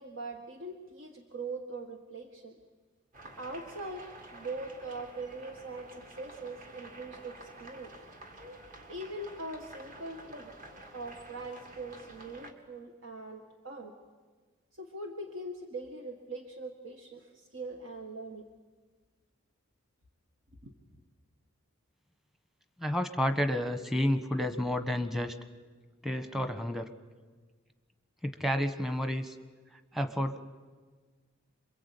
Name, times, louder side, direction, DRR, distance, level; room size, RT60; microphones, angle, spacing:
voice 1, 0.0-2.6 3.4-4.0 4.3-7.9 8.9-10.5 10.9-13.9 14.8-18.5 20.6-20.7, right 2 dB, 65° right, 3 dB, 1.8 m, -42 dB
sound 1, 3.1-12.5, right 1 dB, 40° right, 2.3 m, -50 dB
voice 2, 22.8-25.3 26.0-26.9 28.2-29.4 29.9-30.4, equal, ahead, 7 dB, 1.2 m, -30 dB
27.5 x 23.0 x 8.5 m, 1.4 s
head